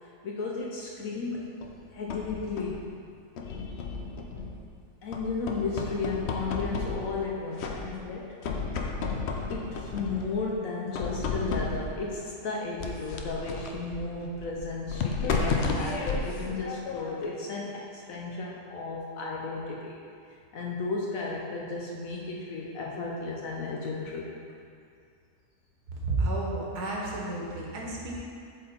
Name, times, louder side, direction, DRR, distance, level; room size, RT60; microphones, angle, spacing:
voice 1, 0.2-1.5 1.9-2.9 5.0-8.4 9.5-20.0 20.5-24.3, left 3 dB, 65° left, -2 dB, 0.9 m, -34 dB
sound 1, 1.6-2.8 3.4-4.7 5.1-7.3 7.6-8.2 8.4-10.4 10.9-12.0 12.8-17.3, left 4 dB, 90° left, 0.5 m, -33 dB
voice 2, 26.0-28.2, right 2 dB, 65° right, -3 dB, 1.5 m, -31 dB
7.4 x 3.8 x 4.2 m, 2.4 s
omnidirectional pair, 1.8 m